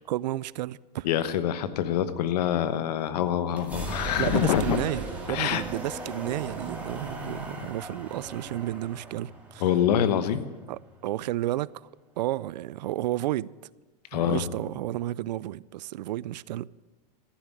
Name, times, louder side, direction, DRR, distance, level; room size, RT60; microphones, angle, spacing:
voice 1, 0.1-1.1 4.2-9.6 10.7-11.9 12.2-13.5 14.1-16.7, right 14 dB, 85° right, 0.4 m, -32 dB
voice 2, 1.0-4.8 5.3-5.6 9.6-10.5 14.1-14.5, left 10 dB, 70° left, 1.1 m, -25 dB
sound 1, 3.5-11.2, right 2 dB, 5° right, 2.1 m, -38 dB
14.0 x 7.3 x 9.7 m
supercardioid pair, 150°, 21 cm